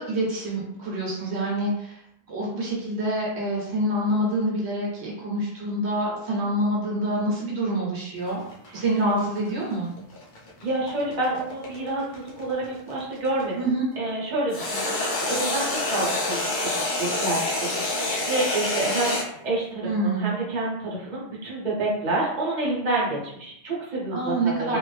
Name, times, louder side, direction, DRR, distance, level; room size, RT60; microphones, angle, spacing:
voice 1, 0.0-2.0 2.3-8.4 8.7-9.9 13.6-13.8 19.8-20.3 24.1-24.8, right 1 dB, 75° right, -3 dB, 1.1 m, -26 dB
sound 1, 8.2-13.4 14.5-19.3, left 2 dB, 50° left, 0.8 m, -27 dB
voice 2, 8.7-9.3 10.6-16.7 17.0-24.7, right 2 dB, 45° right, -5 dB, 1.0 m, -29 dB
2.6 x 2.6 x 3.2 m, 0.75 s
omnidirectional pair, 1.1 m